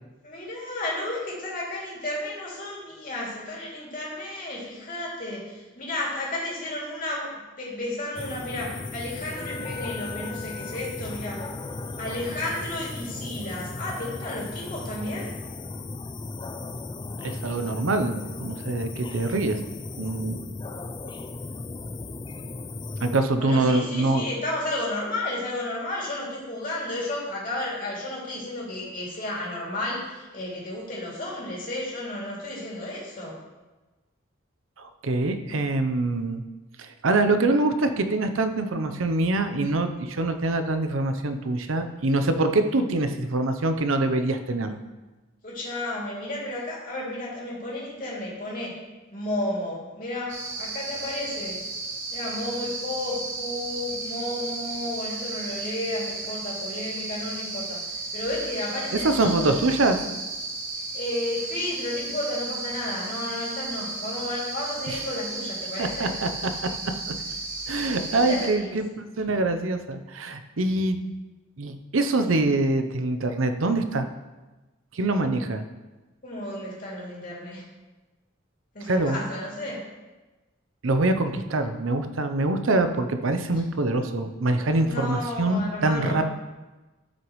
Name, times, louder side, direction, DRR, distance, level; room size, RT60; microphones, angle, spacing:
voice 1, 0.2-7.3 7.6-11.4 12.0-15.3 23.4-33.4 45.4-48.7 49.1-51.6 52.1-59.9 60.9-66.1 68.0-68.7 76.2-77.6 78.7-79.8 84.8-86.2, left 1 dB, 45° left, -5 dB, 2.7 m, -32 dB
sound 1, 8.2-23.2, left 3 dB, 20° left, 0.3 m, -36 dB
voice 2, 17.2-19.6 20.0-20.4 23.0-24.3 34.8-36.4 36.8-44.8 59.0-60.0 64.9-65.0 65.8-66.3 67.7-71.0 71.6-74.1 74.9-75.6 78.8-79.2 80.8-86.3, right 2 dB, 90° right, 8 dB, 0.7 m, -24 dB
sound 2, 50.3-68.5, right 3 dB, 75° right, 2.3 m, -34 dB
12.5 x 6.3 x 3.1 m, 1.2 s
head